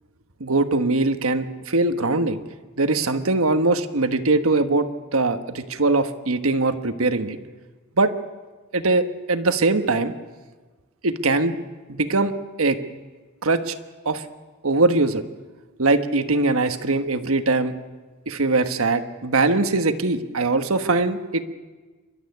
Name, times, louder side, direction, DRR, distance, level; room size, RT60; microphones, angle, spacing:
voice 1, 0.4-2.4 2.8-7.4 8.0-8.1 8.7-10.1 11.0-11.5 11.9-12.3 12.6-12.8 13.4-13.7 14.0-14.2 14.6-15.2 15.8-17.7 18.3-21.4, right 3 dB, 85° right, 9 dB, 1.3 m, -21 dB
28.0 x 12.5 x 9.5 m, 1.3 s
head